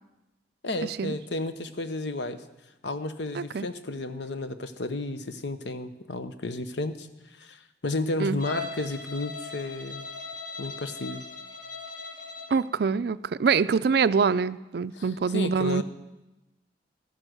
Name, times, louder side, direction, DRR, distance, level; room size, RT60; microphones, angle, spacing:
voice 1, 0.6-2.4 2.8-10.1 10.6-11.2 14.9-15.8, left 2 dB, 70° left, 10 dB, 0.9 m, -33 dB
voice 2, 3.3-3.7 8.2-8.4 12.5-15.8, right 5 dB, 60° right, 16 dB, 0.4 m, -25 dB
Bowed string instrument, 8.4-12.6, left 4 dB, 45° left, 2.2 m, -39 dB
13.5 x 9.9 x 6.4 m, 0.98 s
head